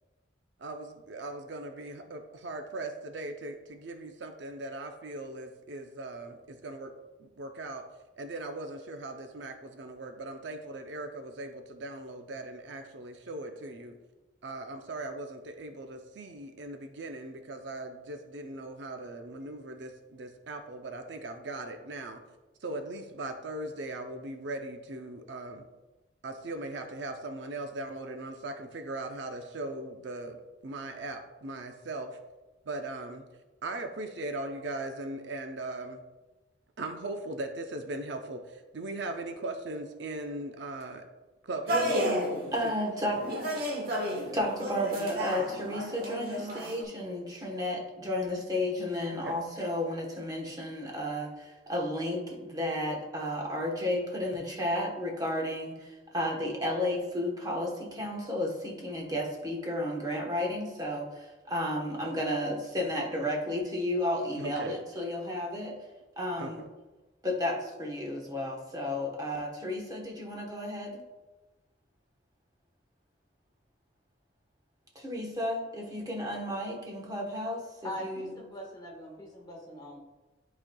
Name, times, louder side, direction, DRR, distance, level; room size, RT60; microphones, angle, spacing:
voice 1, 0.6-6.9 7.2-7.8 8.2-14.0 14.4-22.2 22.6-25.6 26.2-30.4 30.6-32.2 32.7-33.2 33.6-36.0 36.8-41.0 41.4-42.0 42.6-42.7 49.1-49.4 64.3-64.8 66.4-66.5, right 2 dB, 65° right, 6 dB, 0.5 m, -39 dB
sound 1, 41.7-42.5 43.1-46.8, equal, 50° right, 1.3 m, -32 dB
voice 2, 42.5-43.2 44.3-65.8 66.2-66.6 67.2-71.0 74.9-78.3, left 1 dB, 20° right, -1 dB, 1.1 m, -32 dB
voice 3, 77.8-80.0, equal, 20° left, -2 dB, 1.4 m, -42 dB
11.5 x 4.3 x 2.3 m, 1.1 s
head